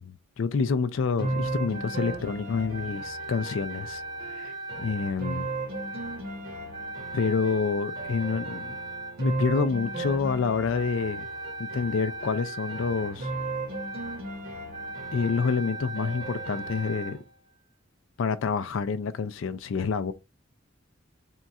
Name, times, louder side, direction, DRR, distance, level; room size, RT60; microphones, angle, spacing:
voice 1, 0.0-4.0 4.3-4.5 4.8-5.5 7.1-8.8 9.2-11.3 11.6-13.3 15.1-17.2 18.2-20.1, left 5 dB, 70° left, 0.4 m, -28 dB
sound 1, 1.2-17.2, right 2 dB, 50° right, 1.3 m, -34 dB
3.7 x 2.3 x 4.1 m
head